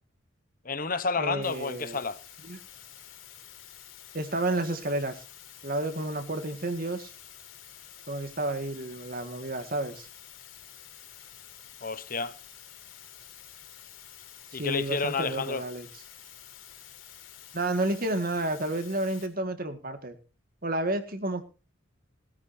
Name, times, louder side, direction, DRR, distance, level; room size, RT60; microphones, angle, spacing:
voice 1, 0.6-2.2 11.8-12.3 14.5-15.6, left 4 dB, 45° left, 1.0 m, -30 dB
voice 2, 1.2-2.0 2.4-2.6 4.1-5.2 5.6-7.1 8.1-10.1 14.5-15.9 17.5-20.2 20.6-21.4, right 2 dB, 45° right, 1.9 m, -31 dB
sound 1, 1.4-19.3, left 10 dB, 70° left, 4.5 m, -49 dB
19.5 x 13.5 x 2.7 m
head